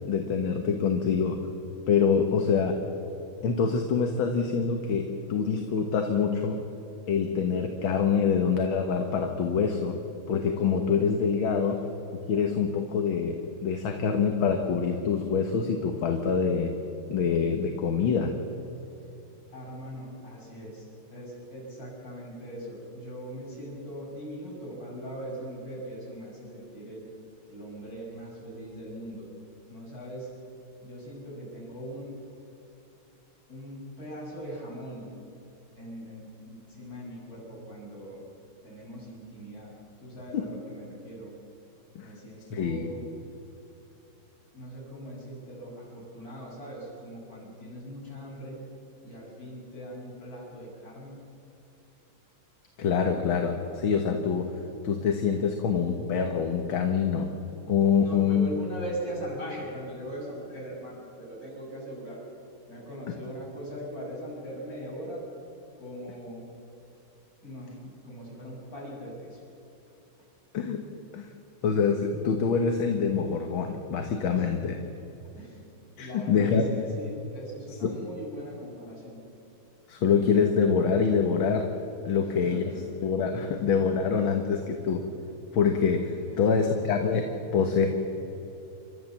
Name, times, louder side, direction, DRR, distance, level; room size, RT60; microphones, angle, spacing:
voice 1, 0.1-1.4 1.9-2.8 3.4-6.6 7.1-10.0 10.3-11.8 12.1-16.7 17.1-18.3 40.3-40.5 42.0-42.1 42.5-42.9 52.8-54.5 54.8-57.3 57.7-58.5 70.5-70.8 71.1-71.3 71.6-74.8 76.0-76.7 77.8-78.0 79.9-81.7 82.1-82.6 83.0-85.1 85.5-87.3 87.5-87.9, left 6 dB, 70° left, 4 dB, 2.0 m, -25 dB
voice 2, 19.5-27.0 27.5-29.3 29.7-30.3 30.8-32.2 33.5-35.1 35.7-38.2 38.6-39.7 40.0-41.3 42.0-43.1 44.5-48.6 49.0-51.2 58.0-62.2 62.7-65.2 65.8-66.4 67.4-69.4 74.4-74.7 75.3-75.7 76.0-79.2 82.2-82.9 83.5-83.6 86.3-86.9, equal, 40° left, -4 dB, 7.1 m, -40 dB
29.5 x 13.0 x 7.3 m, 2.9 s
omnidirectional pair, 2.3 m